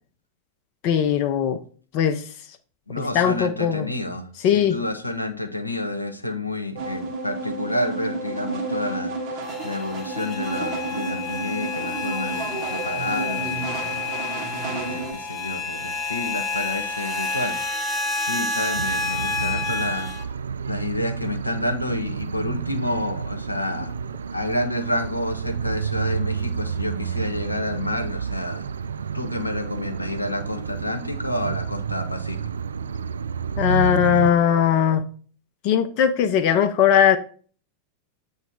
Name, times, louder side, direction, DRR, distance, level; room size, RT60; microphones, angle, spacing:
voice 1, 0.8-1.6 1.9-2.2 3.1-3.9 4.4-4.8 33.6-35.1 35.6-37.2, left 9 dB, 40° left, 0.5 m, -19 dB
voice 2, 2.9-4.3 4.5-9.1 9.6-14.0 14.6-17.6 18.3-20.1 20.7-23.9 24.3-28.7 29.1-32.4, left 1 dB, 85° left, 0.7 m, -29 dB
sound 1, 6.7-15.1, right 3 dB, 40° right, 1.5 m, -31 dB
sound 2, 9.4-20.2, left 3 dB, 20° left, 1.0 m, -29 dB
sound 3, 18.7-34.3, right 6 dB, 70° right, 0.3 m, -30 dB
8.0 x 3.2 x 4.5 m
figure-of-eight pair, 90°, 0 cm